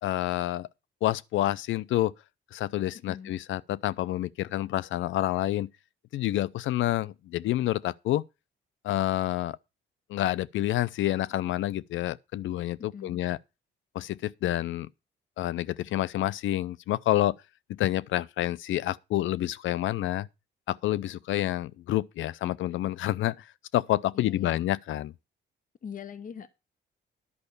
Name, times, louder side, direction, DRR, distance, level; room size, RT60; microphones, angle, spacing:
voice 1, 0.0-0.7 1.0-2.1 2.5-5.7 6.1-8.2 8.8-9.6 10.1-13.4 13.9-14.9 15.4-17.4 17.7-20.3 20.7-23.3 23.7-25.1, left 14 dB, 75° left, 0.6 m, -28 dB
voice 2, 12.8-13.2 24.1-24.6 25.8-26.5, left 7 dB, 40° left, 0.9 m, -42 dB
11.0 x 5.3 x 6.7 m
cardioid pair, 90°, 20 cm